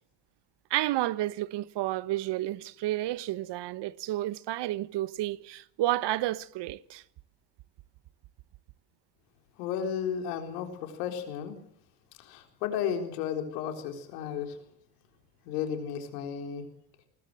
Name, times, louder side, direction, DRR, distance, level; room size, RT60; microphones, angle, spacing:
voice 1, 0.7-7.0, right 15 dB, 60° right, 1.1 m, -31 dB
voice 2, 9.6-11.6 12.2-14.6 15.5-16.6, left 8 dB, 85° left, 4.1 m, -33 dB
20.0 x 19.0 x 7.7 m
hypercardioid pair, 70°, 46 cm